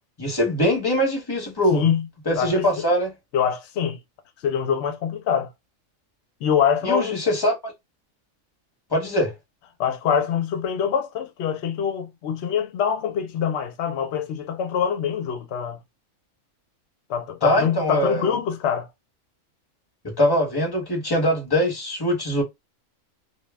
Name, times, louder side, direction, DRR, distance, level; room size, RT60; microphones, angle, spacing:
voice 1, 0.2-1.8 2.3-3.1 6.8-7.7 8.9-9.3 17.4-18.4 20.2-22.4, equal, 20° left, 0.9 m, -22 dB
voice 2, 1.7-2.1 2.4-2.8 3.3-4.0 4.4-5.5 6.4-7.2 9.8-15.8 17.1-18.9, left 8 dB, 65° left, 0.8 m, -24 dB
2.3 x 2.0 x 3.3 m
omnidirectional pair, 1.4 m